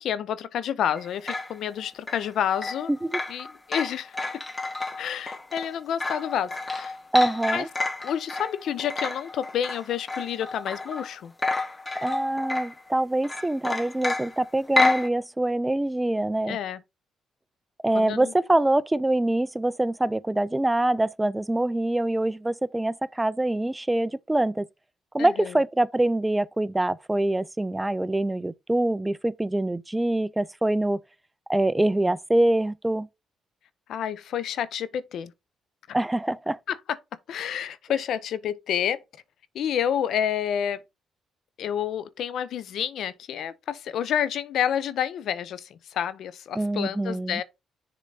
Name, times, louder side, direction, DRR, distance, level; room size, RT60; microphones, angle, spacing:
voice 1, 0.0-2.9 3.3-4.2 5.0-7.0 7.5-7.6 8.0-11.3 16.5-16.8 17.9-18.3 25.2-25.5 33.9-35.3 35.9-36.0 36.7-37.0 37.3-39.0 39.5-40.8 41.6-47.4, left 9 dB, 70° left, 0.7 m, -29 dB
sound 1, 1.0-11.1 11.4-12.9 13.2-15.1, left 3 dB, 20° left, 1.1 m, -30 dB
voice 2, 2.9-3.2 7.1-7.7 12.0-16.6 17.8-24.7 25.1-31.0 31.5-33.1 35.9-36.6 46.6-47.4, right 1 dB, 10° right, 0.3 m, -24 dB
6.8 x 3.8 x 5.0 m
cardioid pair, 90°, 0 cm